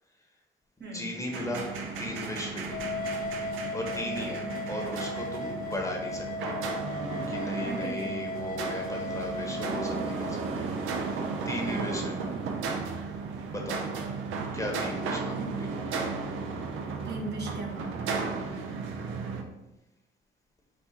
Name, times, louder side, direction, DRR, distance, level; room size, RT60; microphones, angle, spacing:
voice 1, 0.9-2.8 3.7-6.6 7.3-10.7 11.0-11.2 11.4-12.2 13.5-13.8 14.5-15.7 18.5-18.6, left 1 dB, 15° left, 0 dB, 1.0 m, -37 dB
sound 1, 1.3-19.4, right 4 dB, 85° right, 0.6 m, -34 dB
sound 2, 2.7-10.4, left 2 dB, 45° left, 0.5 m, -36 dB
voice 2, 4.0-4.5 7.6-8.2 11.7-12.1 15.4-15.7 17.0-18.4, right 2 dB, 60° right, 0 dB, 1.1 m, -39 dB
5.1 x 2.4 x 4.2 m, 0.95 s
cardioid pair, 90°, 20 cm